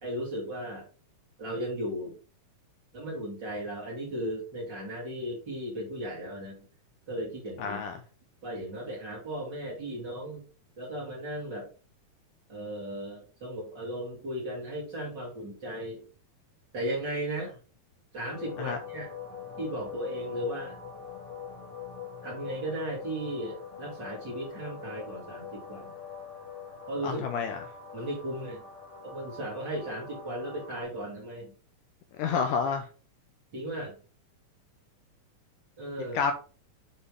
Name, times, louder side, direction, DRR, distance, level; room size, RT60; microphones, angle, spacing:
voice 1, 0.0-0.9 1.4-2.2 2.9-6.6 7.1-7.8 8.4-10.4 10.8-11.7 12.5-16.0 16.7-17.5 18.1-19.1 19.6-20.8 22.2-25.9 26.9-27.4 27.9-28.7 29.0-31.5 33.5-33.9 35.8-36.2, right 1 dB, 35° right, -4 dB, 2.3 m, -36 dB
voice 2, 7.6-7.9 18.6-18.8 27.0-27.6 32.2-32.9 36.1-36.3, left 6 dB, 80° left, 5 dB, 2.0 m, -29 dB
sound 1, 18.2-30.8, left 7 dB, 55° left, 3.0 m, -43 dB
6.8 x 4.4 x 3.5 m, 0.36 s
omnidirectional pair, 4.1 m